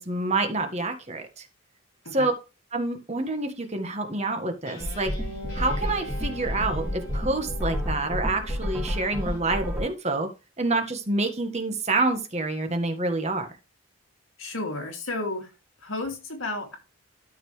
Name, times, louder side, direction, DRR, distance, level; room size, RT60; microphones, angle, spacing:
voice 1, 0.0-1.5 2.1-2.3 2.7-5.1 5.5-10.3 10.6-13.5, right 2 dB, 30° right, 5 dB, 1.6 m, -27 dB
Guitar, 4.6-9.4, equal, 50° left, 6.5 m, -42 dB
Minor Arp Simple, 4.8-9.8, equal, 5° right, 3.9 m, -30 dB
voice 2, 14.4-15.5 15.8-16.8, left 2 dB, 65° left, 3 dB, 2.6 m, -32 dB
12.5 x 5.8 x 3.3 m, 0.29 s
head